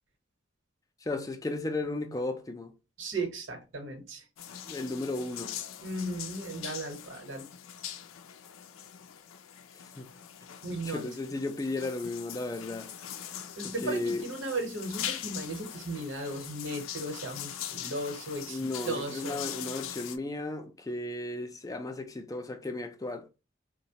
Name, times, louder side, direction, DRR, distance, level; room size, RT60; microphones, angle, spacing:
voice 1, 1.0-2.7 4.7-5.5 10.0-10.1 10.7-12.9 13.6-14.2 18.5-23.2, left 2 dB, 15° left, 0.4 m, -35 dB
voice 2, 3.0-4.3 5.8-7.5 10.6-11.0 13.6-19.4, right 2 dB, 70° right, 1.0 m, -36 dB
sound 1, 4.4-20.2, left 10 dB, 90° left, 0.4 m, -42 dB
3.9 x 2.1 x 2.8 m
head